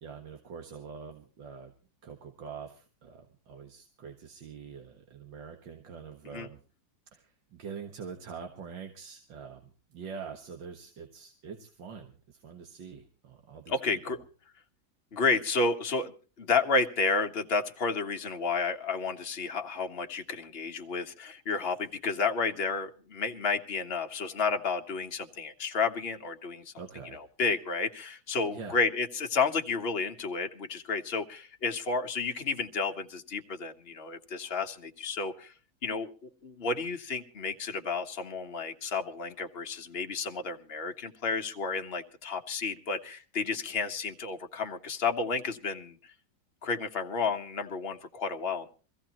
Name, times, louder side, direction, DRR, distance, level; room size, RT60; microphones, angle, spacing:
voice 1, 0.0-1.7 2.0-6.6 7.1-14.0 26.8-27.2 28.5-28.9, right 6 dB, 85° right, 4 dB, 2.2 m, -45 dB
voice 2, 13.7-14.2 15.1-26.7 27.1-35.5 35.8-46.1 46.6-48.7, left 4 dB, 35° left, 4 dB, 1.4 m, -31 dB
24.0 x 15.5 x 3.0 m, 0.36 s
omnidirectional pair, 2.0 m